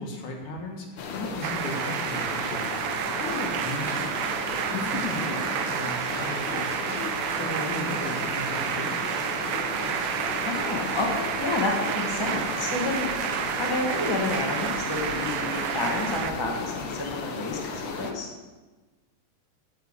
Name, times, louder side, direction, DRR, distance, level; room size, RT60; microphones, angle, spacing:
voice 1, 0.0-2.8 3.1-4.4 4.7-7.0 7.4-9.1, left 2 dB, 70° left, 1 dB, 3.0 m, -36 dB
sound 1, 1.0-18.1, left 4 dB, 90° left, 1.0 m, -35 dB
sound 2, 1.4-16.3, right 8 dB, 75° right, 1.8 m, -30 dB
voice 2, 10.4-18.3, left 2 dB, 15° left, -1 dB, 0.9 m, -30 dB
9.4 x 7.4 x 8.2 m, 1.2 s
omnidirectional pair, 3.7 m